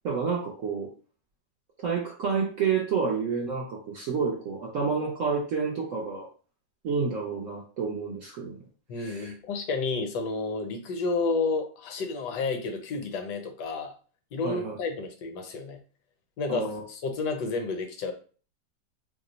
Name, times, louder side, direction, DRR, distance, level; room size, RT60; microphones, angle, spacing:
voice 1, 0.0-0.9 1.8-6.3 6.8-8.6 9.0-9.3 14.4-14.8 16.5-16.8, right 5 dB, 70° right, -2 dB, 0.8 m, -29 dB
voice 2, 8.9-13.9 14.3-15.8 16.4-18.1, left 4 dB, 75° left, 5 dB, 1.2 m, -31 dB
2.9 x 2.0 x 3.8 m, 0.39 s
omnidirectional pair, 1.9 m